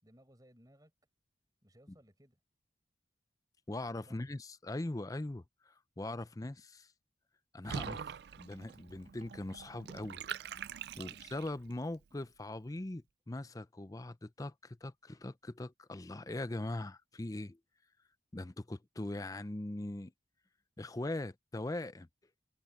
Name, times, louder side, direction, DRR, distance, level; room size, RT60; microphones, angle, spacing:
voice 1, 0.0-0.9 1.6-2.4 4.1-4.3 11.0-11.2, equal, 20° right, 5.1 m, -62 dB
voice 2, 3.7-6.9 7.5-8.0 8.4-10.2 11.0-17.6 18.3-20.1 20.8-22.1, left 2 dB, 20° left, 0.5 m, -41 dB
Water / Bathtub (filling or washing), 7.6-11.7, right 7 dB, 60° right, 0.4 m, -44 dB
head